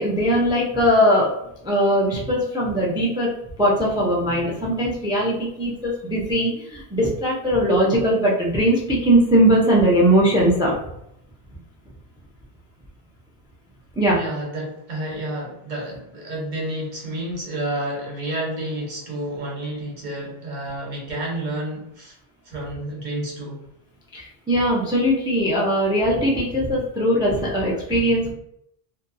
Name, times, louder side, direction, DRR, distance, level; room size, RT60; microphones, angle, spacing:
voice 1, 0.0-1.3 1.6-3.3 3.6-10.7 14.0-14.2 24.1-28.3, equal, 5° right, -3 dB, 0.3 m, -20 dB
voice 2, 14.1-22.1 22.4-23.6, right 1 dB, 50° right, -2 dB, 0.9 m, -30 dB
2.7 x 2.2 x 2.5 m, 0.78 s
omnidirectional pair, 1.0 m